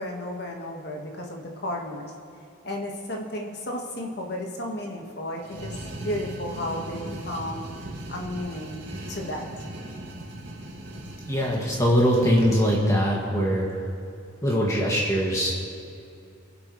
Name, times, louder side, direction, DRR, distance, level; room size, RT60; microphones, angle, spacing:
voice 1, 0.0-2.1 2.6-5.8 6.0-7.6 8.1-9.5, left 1 dB, 50° left, 0 dB, 1.5 m, -33 dB
sound 1, 5.4-12.8, right 1 dB, 55° right, 2.4 m, -39 dB
voice 2, 11.3-13.8 14.4-15.5, equal, 15° left, -3 dB, 2.0 m, -22 dB
24.5 x 8.1 x 3.2 m, 2.5 s
head